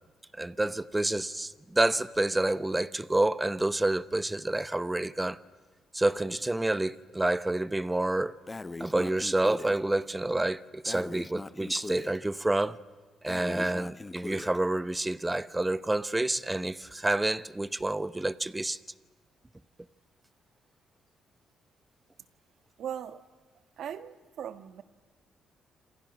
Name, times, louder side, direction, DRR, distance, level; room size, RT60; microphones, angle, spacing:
voice 1, 0.3-5.4 5.9-8.3 8.8-12.8 13.2-18.8, right 2 dB, 15° right, 0.9 m, -28 dB
Breathing, 8.5-9.8 10.8-12.2 13.2-14.6, left 3 dB, 20° left, 0.9 m, -40 dB
voice 2, 22.8-23.2 23.8-24.8, right 9 dB, 70° right, 1.5 m, -39 dB
28.0 x 27.0 x 6.2 m
cardioid pair, 90°, 0 cm